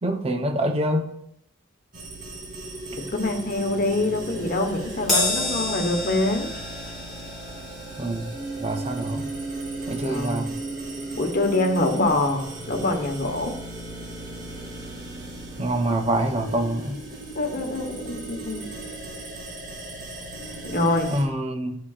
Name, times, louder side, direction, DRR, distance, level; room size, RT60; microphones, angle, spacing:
voice 1, 0.0-1.1 8.0-8.3 8.6-9.3 9.9-10.5 15.6-17.0 20.8-21.8, right 1 dB, 35° right, 4 dB, 0.8 m, -26 dB
sound 1, 1.9-21.2, right 2 dB, 50° right, 2.4 m, -36 dB
voice 2, 3.1-6.5 10.0-10.4 11.2-13.5 17.3-18.6 20.6-21.1, left 2 dB, 50° left, 4 dB, 1.2 m, -25 dB
Crash cymbal, 5.1-11.7 12.0-12.3 13.3-13.4, left 2 dB, ahead, 3.3 m, -31 dB
11.5 x 5.8 x 2.5 m, 0.74 s
head